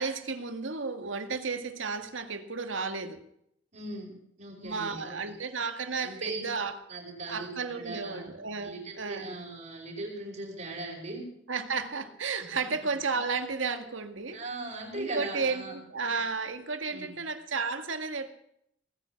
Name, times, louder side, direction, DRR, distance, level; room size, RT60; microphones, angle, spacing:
voice 1, 0.0-3.2 4.6-6.8 7.3-9.3 11.5-14.4 15.0-18.3, right 4 dB, 80° right, 8 dB, 1.9 m, -33 dB
voice 2, 3.7-5.4 6.0-6.5 6.9-8.3 8.6-11.3 14.3-15.7 16.9-17.2, right 2 dB, 40° right, -1 dB, 5.5 m, -39 dB
20.0 x 9.8 x 7.1 m, 0.72 s
head